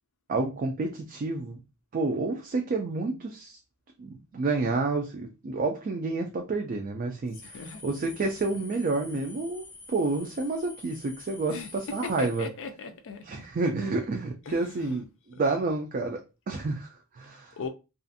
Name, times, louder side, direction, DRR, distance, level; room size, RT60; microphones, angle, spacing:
voice 1, 0.3-1.6 1.9-3.6 4.0-12.5 13.2-16.2 16.5-17.5, right 3 dB, 40° right, 0.3 m, -29 dB
sound 1, 7.3-12.5, left 3 dB, 10° left, 0.7 m, -48 dB
voice 2, 7.4-7.8 11.5-13.4 14.5-15.0 15.3-15.6 17.5-17.7, left 4 dB, 60° left, 0.4 m, -39 dB
2.4 x 2.4 x 2.6 m
head